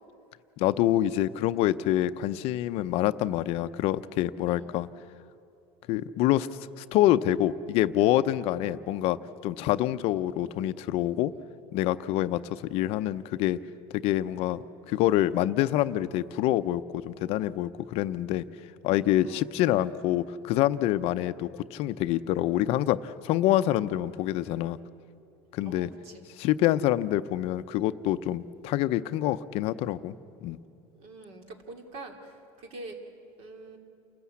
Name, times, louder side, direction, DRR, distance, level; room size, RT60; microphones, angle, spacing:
voice 1, 0.6-4.9 5.9-6.5 6.8-9.2 9.4-11.3 11.7-13.6 13.9-18.4 18.8-24.8 25.5-25.9 26.4-30.1 30.4-30.6, left 13 dB, 50° left, 12 dB, 0.6 m, -26 dB
voice 2, 25.6-26.2 31.0-32.3 32.6-33.0 33.4-33.8, right 2 dB, 50° right, 4 dB, 3.0 m, -44 dB
29.0 x 14.0 x 8.5 m, 2.8 s
cardioid pair, 150°, 13 cm